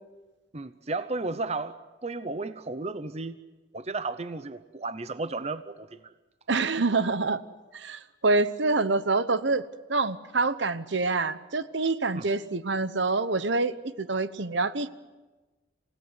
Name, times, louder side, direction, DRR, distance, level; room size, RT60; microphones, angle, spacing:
voice 1, 0.5-3.4 3.7-6.1 12.1-12.3, right 3 dB, 35° right, 12 dB, 0.7 m, -34 dB
voice 2, 6.5-7.4 7.7-14.9, right 3 dB, 70° right, 13 dB, 1.0 m, -26 dB
28.0 x 17.0 x 9.6 m, 1.2 s
head